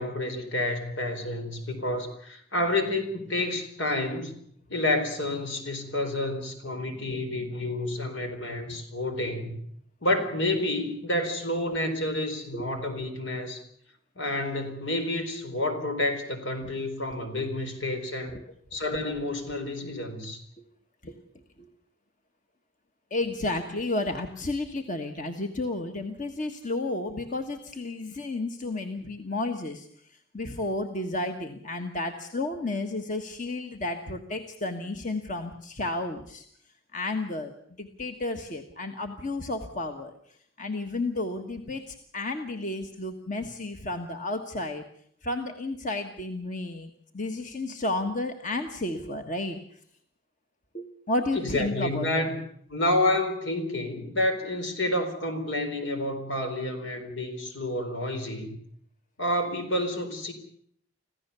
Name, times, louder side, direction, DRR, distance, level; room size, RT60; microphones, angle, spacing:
voice 1, 0.0-4.4 4.7-9.6 10.0-13.6 14.2-18.4 18.7-20.4 51.3-52.4 52.7-58.6 59.2-60.3, left 1 dB, 80° left, 6 dB, 4.2 m, -29 dB
voice 2, 23.1-36.4 36.9-37.5 37.8-40.1 40.6-44.8 45.2-49.8 50.7-52.2, left 2 dB, 45° left, 5 dB, 1.5 m, -32 dB
26.5 x 15.5 x 6.9 m, 0.65 s
head